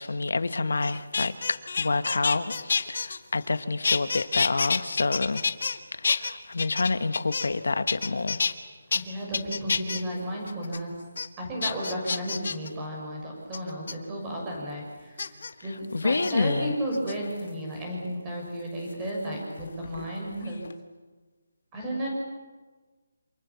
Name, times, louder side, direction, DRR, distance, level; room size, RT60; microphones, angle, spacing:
voice 1, 0.0-5.4 5.9-8.4 15.9-16.7, left 3 dB, 75° left, 11 dB, 1.7 m, -28 dB
sound 1, 0.8-3.6 3.8-5.8 6.0-7.6 7.9-8.5 8.9-9.0 9.3-10.0 10.5-10.8 11.2-11.3 11.6-12.7 13.5-13.9 15.2-15.5 16.1-16.3 16.9-17.5 18.9-20.1 20.4-20.7, left 5 dB, 50° left, 1.8 m, -29 dB
voice 2, 8.9-10.9 11.4-15.2 15.6-20.6 21.7-22.1, equal, 10° right, -1 dB, 6.6 m, -33 dB
28.0 x 27.5 x 7.2 m, 1.3 s
hypercardioid pair, 175°, 0 cm